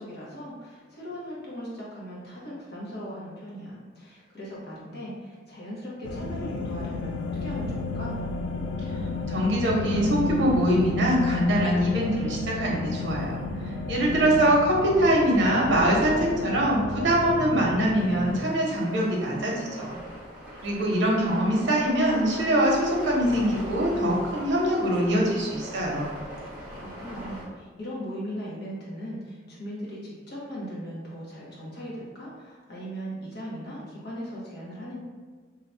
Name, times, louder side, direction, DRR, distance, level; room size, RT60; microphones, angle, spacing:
voice 1, 0.0-8.2 13.8-14.4 26.8-35.0, equal, 55° left, -6 dB, 1.0 m, -38 dB
sound 1, 6.0-18.5, left 3 dB, 80° left, 0.3 m, -32 dB
voice 2, 9.3-13.4 13.9-20.0 20.6-26.1, right 1 dB, 65° right, -2 dB, 0.8 m, -23 dB
sound 2, 18.0-27.4, equal, 5° right, 0.8 m, -41 dB
2.8 x 2.2 x 3.8 m, 1.5 s
head